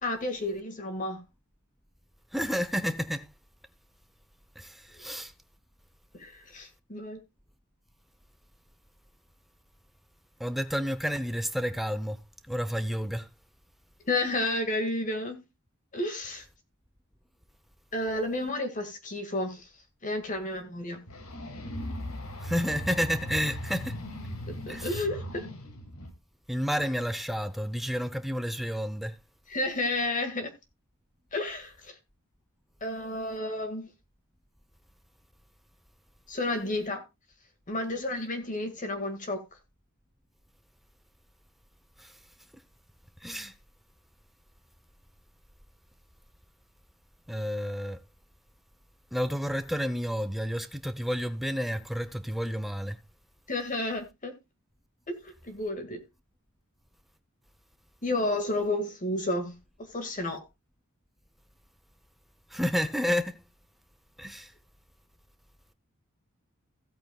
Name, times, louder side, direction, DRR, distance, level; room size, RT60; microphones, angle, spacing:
voice 1, 0.0-1.2 6.1-7.2 14.1-15.4 15.9-16.4 17.9-19.7 20.0-21.0 24.5-25.4 29.5-30.5 31.3-31.9 32.8-33.9 36.3-37.0 37.7-39.4 53.5-54.4 55.1-56.0 58.0-59.6 59.9-60.4, left 2 dB, 35° left, 1.9 m, -31 dB
voice 2, 2.3-3.3 4.6-5.3 10.4-12.2 12.5-13.3 22.4-24.0 24.7-25.0 26.5-29.2 42.0-42.1 43.2-43.5 47.3-48.0 49.1-53.0 62.5-63.4 64.2-64.5, equal, ahead, 0.7 m, -30 dB
sound 1, 21.1-26.1, left 1 dB, 80° left, 2.3 m, -38 dB
15.5 x 8.5 x 2.3 m
head